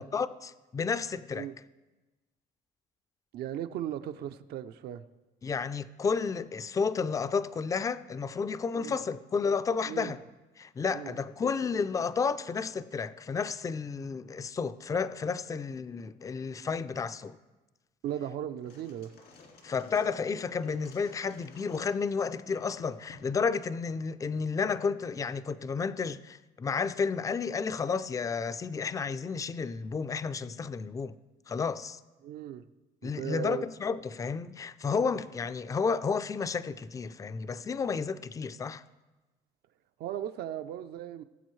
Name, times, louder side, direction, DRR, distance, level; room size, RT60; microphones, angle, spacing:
voice 1, 0.0-1.5 5.4-10.2 10.6-17.4 19.6-31.1 31.5-32.0 33.0-38.8, left 5 dB, 20° left, 0.4 m, -31 dB
voice 2, 3.3-5.1 8.7-9.0 9.9-10.2 10.9-11.1 18.0-19.1 32.2-32.6 33.0-33.7 40.0-41.2, right 11 dB, 70° right, 0.6 m, -37 dB
sound 1, 18.5-24.0, left 4 dB, 75° left, 2.2 m, -55 dB
19.0 x 7.7 x 3.2 m
cardioid pair, 110°, 17 cm